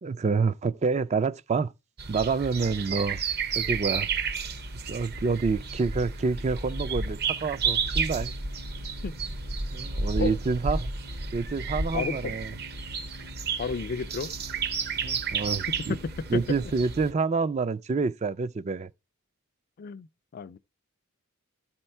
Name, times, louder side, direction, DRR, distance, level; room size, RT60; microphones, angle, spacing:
voice 1, 0.0-1.7 2.1-3.2 3.5-4.1 4.9-8.3 9.7-10.9 11.3-12.5 15.0-15.9 16.3-18.9, right 4 dB, 30° right, 0.4 m, -28 dB
sound 1, 2.0-17.1, right 4 dB, 45° right, 0.8 m, -32 dB
voice 2, 11.9-12.3 13.6-14.3 19.8-20.1 20.3-20.6, left 5 dB, 45° left, 0.4 m, -32 dB
13.0 x 4.4 x 4.3 m
head